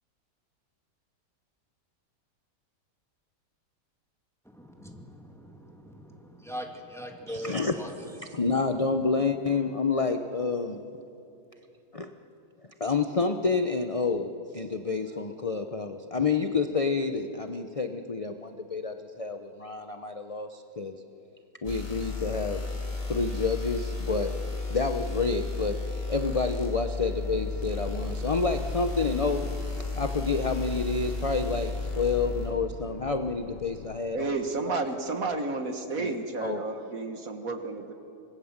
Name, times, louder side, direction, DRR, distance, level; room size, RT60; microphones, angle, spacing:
voice 1, 4.5-7.9 8.3-8.4, equal, ahead, 2 dB, 2.2 m, -41 dB
voice 2, 7.3-7.8 8.3-10.8 11.9-12.1 12.8-21.0 21.6-22.6 23.1-24.4 24.7-25.8 26.1-29.4 30.0-34.3 34.7-34.8 36.0-36.1 36.4-36.6, left 4 dB, 40° left, 7 dB, 0.5 m, -29 dB
sound 1, 21.6-32.5, left 3 dB, 20° left, 5.6 m, -33 dB
sound 2, 27.2-34.0, left 7 dB, 90° left, 1.6 m, -44 dB
voice 3, 34.1-37.9, right 3 dB, 55° right, 6 dB, 1.8 m, -31 dB
26.0 x 20.0 x 7.4 m, 2.8 s
omnidirectional pair, 1.9 m